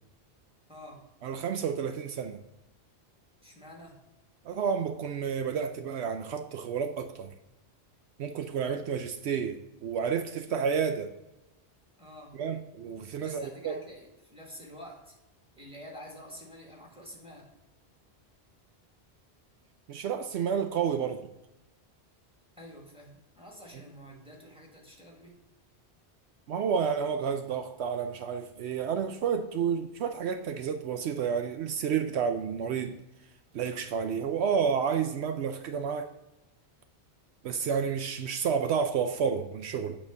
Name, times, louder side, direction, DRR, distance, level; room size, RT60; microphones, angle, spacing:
voice 1, 0.7-1.1 3.4-4.0 12.0-12.4 13.2-15.2 15.6-17.5 22.5-25.4, equal, 5° right, 1.9 m, -48 dB
voice 2, 1.2-2.4 4.5-7.3 8.2-11.1 12.4-13.8 19.9-21.2 26.5-33.0 33.5-36.1 37.4-40.0, right 7 dB, 75° right, 0.9 m, -30 dB
8.8 x 4.3 x 5.2 m
omnidirectional pair, 1.1 m